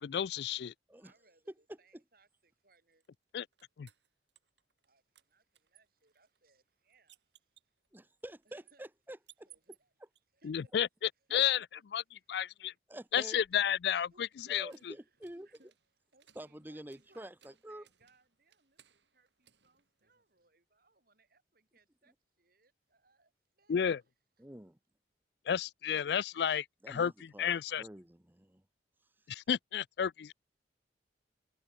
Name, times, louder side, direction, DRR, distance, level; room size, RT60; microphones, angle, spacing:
voice 1, 0.0-0.7 3.3-3.5 3.8-3.9 10.4-10.9 11.3-11.6 11.9-12.0 12.3-12.7 13.1-14.7 23.7-24.0 25.5-27.8 29.3-30.3, left 9 dB, 65° left, 0.3 m, -32 dB
voice 2, 0.9-3.0 4.8-8.1 8.5-8.8 9.5-9.9 10.3-10.7 11.2-11.6 11.9-12.3 14.1-15.8 16.1-24.1 24.4-24.5, right 3 dB, 55° right, 6.9 m, -70 dB
sound 1, 3.0-4.9 5.2-10.2 13.0-20.5, right 12 dB, 75° right, 6.4 m, -67 dB
voice 3, 7.9-9.5 11.3-11.4 12.9-13.5 14.5-15.5 16.3-17.8 24.4-24.8 26.8-27.5 27.8-28.6, right 1 dB, 10° right, 0.9 m, -48 dB
head